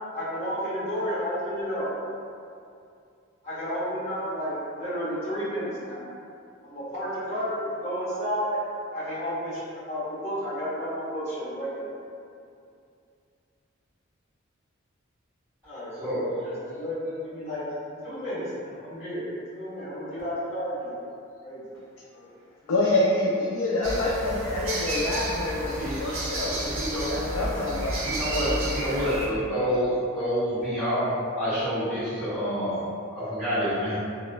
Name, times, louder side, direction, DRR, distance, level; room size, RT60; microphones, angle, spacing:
voice 1, 0.1-1.9 3.4-6.0 6.6-8.6 8.9-11.9 15.6-17.6 18.0-19.2 19.5-20.9 21.4-21.6 22.1-22.3, equal, 30° left, -11 dB, 1.1 m, -32 dB
voice 2, 16.0-16.4 25.7-26.0 26.5-27.1 28.0-32.8 33.1-33.9, equal, 5° right, -20 dB, 1.4 m, -28 dB
voice 3, 22.7-26.5 27.1-28.0, left 2 dB, 85° left, -5 dB, 0.3 m, -26 dB
sound 1, 23.8-29.3, right 1 dB, 70° right, 0.5 m, -31 dB
3.0 x 2.0 x 2.3 m, 2.5 s
head